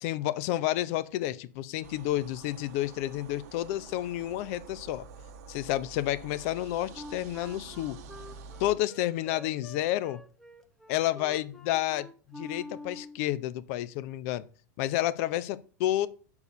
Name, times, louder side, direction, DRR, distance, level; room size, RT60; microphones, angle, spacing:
voice 1, 0.0-5.1 5.5-8.0 8.6-10.2 10.9-14.4 14.8-16.1, left 14 dB, 55° left, 0.7 m, -30 dB
sound 1, 1.8-8.8, right 5 dB, 60° right, 1.0 m, -48 dB
Wind instrument woodwind instrument, 6.9-13.2, left 1 dB, 5° left, 1.0 m, -46 dB
6.7 x 4.8 x 6.7 m
hypercardioid pair, 105°, 9 cm